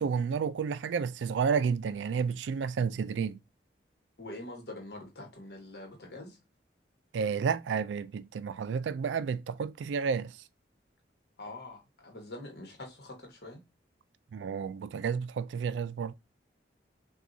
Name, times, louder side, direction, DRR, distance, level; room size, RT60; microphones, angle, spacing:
voice 1, 0.0-3.4 7.1-10.4 14.3-16.1, right 6 dB, 90° right, 0.3 m, -31 dB
voice 2, 4.2-6.4 11.4-13.6, left 2 dB, 65° left, 1.2 m, -44 dB
6.0 x 2.3 x 2.6 m
head